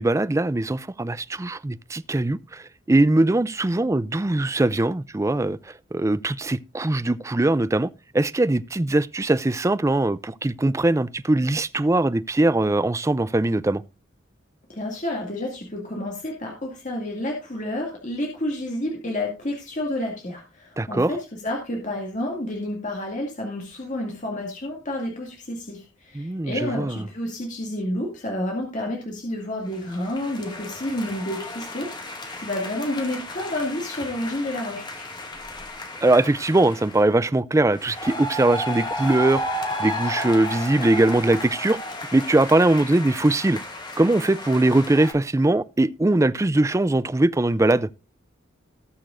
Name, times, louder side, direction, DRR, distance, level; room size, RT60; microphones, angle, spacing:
voice 1, 0.0-5.6 5.9-13.8 20.8-21.1 26.1-27.0 36.0-39.4 39.8-41.8 42.1-43.6 44.0-47.9, right 2 dB, 15° right, 0.4 m, -21 dB
voice 2, 14.7-21.2 21.4-35.1, left 1 dB, 40° left, 2.3 m, -30 dB
sound 1, 29.7-37.0 37.7-45.1, left 1 dB, 25° left, 2.0 m, -33 dB
19.5 x 6.6 x 2.5 m
head